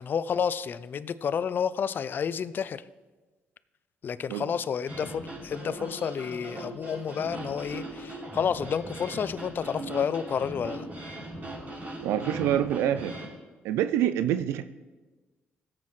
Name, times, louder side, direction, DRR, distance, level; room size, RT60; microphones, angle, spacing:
voice 1, 0.0-2.8 4.0-10.9, left 7 dB, 50° left, 15 dB, 0.4 m, -30 dB
sound 1, 4.9-13.3, right 1 dB, 45° right, 3.9 m, -39 dB
voice 2, 12.0-13.2 13.6-14.6, right 11 dB, 90° right, 12 dB, 0.4 m, -26 dB
17.0 x 7.5 x 3.2 m, 1.2 s
cardioid pair, 75°, 4 cm